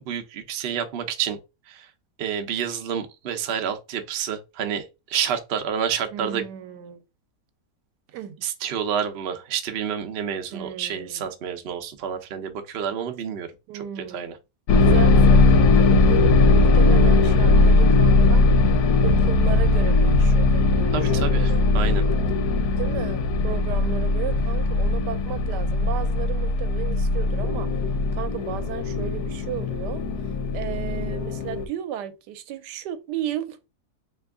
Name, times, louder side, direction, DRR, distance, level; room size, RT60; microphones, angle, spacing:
voice 1, 0.0-1.4 1.7-1.9 2.2-6.4 8.4-13.5 13.7-14.4 20.9-22.0, right 8 dB, 60° right, 0.6 m, -29 dB
voice 2, 6.1-7.0 8.1-8.4 10.5-11.2 13.7-14.4 14.8-18.5 19.0-21.7 22.8-27.7 28.1-33.7, right 10 dB, 85° right, 1.2 m, -34 dB
sound 1, 14.7-31.7, left 3 dB, 75° left, 1.1 m, -19 dB
3.4 x 3.0 x 3.5 m
omnidirectional pair, 1.8 m